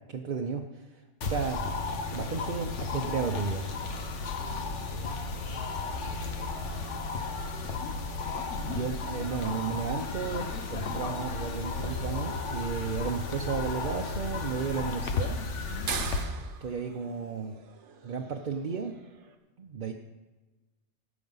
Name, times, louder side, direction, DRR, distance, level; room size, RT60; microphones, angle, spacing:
voice 1, 0.1-1.7 2.1-3.7 8.7-15.4 16.3-17.5 18.0-19.0 19.6-19.9, right 6 dB, 50° right, 2 dB, 0.7 m, -33 dB
sound 1, 1.2-16.2, left 4 dB, 85° left, 1.3 m, -34 dB
voice 2, 4.4-7.8, right 1 dB, 40° left, -3 dB, 3.0 m, -51 dB
sound 2, 8.0-19.4, right 6 dB, 75° right, 1.2 m, -45 dB
16.0 x 6.1 x 5.5 m, 1.2 s
omnidirectional pair, 1.2 m